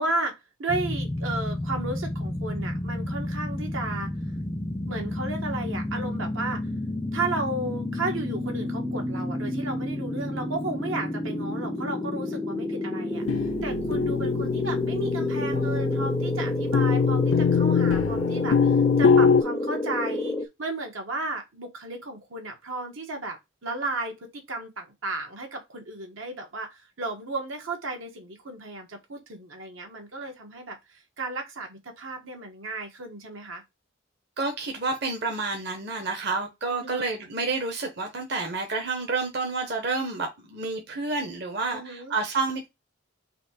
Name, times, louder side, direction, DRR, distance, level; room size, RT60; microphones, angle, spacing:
voice 1, 0.0-4.1 4.9-6.6 7.1-33.6 36.8-37.0 41.7-42.2, right 2 dB, 85° right, 1.5 m, -34 dB
sound 1, 0.7-20.5, left 1 dB, 10° left, 0.4 m, -30 dB
sound 2, 13.1-19.4, left 6 dB, 75° left, 0.4 m, -23 dB
voice 2, 15.2-15.5 34.4-42.7, right 3 dB, 55° right, 1.0 m, -29 dB
4.2 x 2.9 x 4.3 m
head